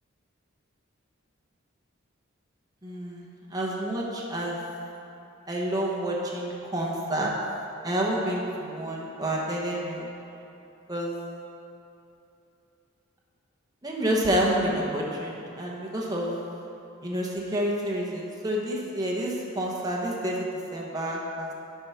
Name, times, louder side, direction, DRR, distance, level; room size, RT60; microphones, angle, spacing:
voice 1, 2.8-4.6 5.5-7.3 7.8-10.1 10.9-11.2 13.8-16.4 17.0-21.5, right 1 dB, 20° right, -3 dB, 1.0 m, -29 dB
10.5 x 4.8 x 5.7 m, 2.8 s
head